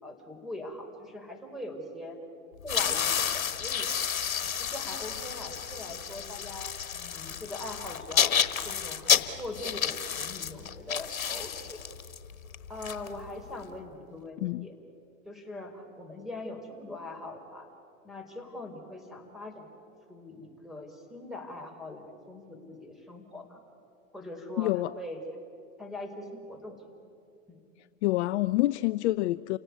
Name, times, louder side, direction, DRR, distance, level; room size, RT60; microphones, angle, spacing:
voice 1, 0.0-2.2 2.6-3.9 4.3-11.8 12.7-14.7 15.2-17.7 18.0-19.7 20.1-23.6 24.1-25.2 25.8-26.9 27.5-27.6, left 1 dB, ahead, 4 dB, 4.5 m, -42 dB
sound 1, 2.6-13.6, left 8 dB, 85° left, 1.4 m, -30 dB
voice 2, 24.6-24.9 28.0-29.6, left 17 dB, 55° left, 15 dB, 0.6 m, -27 dB
29.5 x 17.5 x 9.6 m, 2.7 s
hypercardioid pair, 100°, 40 cm